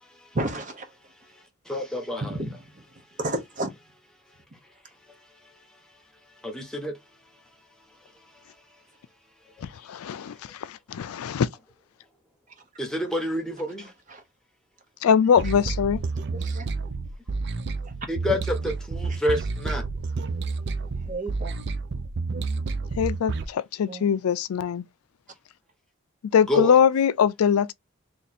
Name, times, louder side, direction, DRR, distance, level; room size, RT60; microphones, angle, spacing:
voice 1, 0.3-0.9 2.2-3.7 13.8-14.2 16.3-16.7 21.1-21.6 23.8-24.0, right 2 dB, 35° right, 1.0 m, -32 dB
voice 2, 1.7-2.2 6.8-6.9 12.8-13.4 13.7-13.8 18.1-18.4 19.0-19.4 19.6-19.8 26.5-26.7, left 1 dB, 5° left, 1.0 m, -26 dB
voice 3, 9.6-10.3 10.6-11.5 15.0-16.0 22.9-24.8 26.3-27.7, left 7 dB, 85° left, 0.4 m, -22 dB
sound 1, 15.4-23.5, right 4 dB, 50° right, 0.5 m, -30 dB
3.2 x 2.8 x 4.1 m
head